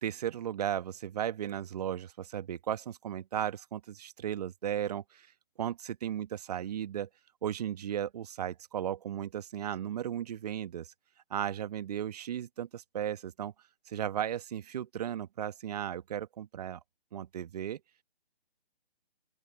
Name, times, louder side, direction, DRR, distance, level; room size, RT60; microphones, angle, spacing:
voice 1, 0.0-5.3 5.6-7.1 7.4-10.9 11.3-13.5 13.9-16.8 17.1-17.8, right 10 dB, 40° right, 1.4 m, -35 dB
open air
figure-of-eight pair, 145°, 31 cm